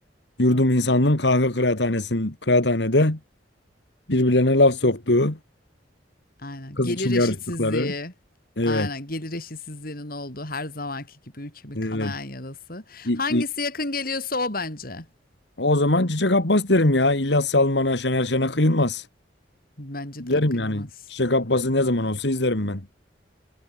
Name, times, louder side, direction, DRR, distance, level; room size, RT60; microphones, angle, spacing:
voice 1, 0.4-3.2 4.1-5.4 6.8-7.9 8.6-8.9 11.7-12.1 13.0-13.4 15.6-19.1 20.2-22.8, left 2 dB, 75° left, 2.4 m, -21 dB
voice 2, 6.4-8.1 8.6-15.1 19.8-20.9 22.0-22.2, left 3 dB, 55° left, 5.4 m, -32 dB
head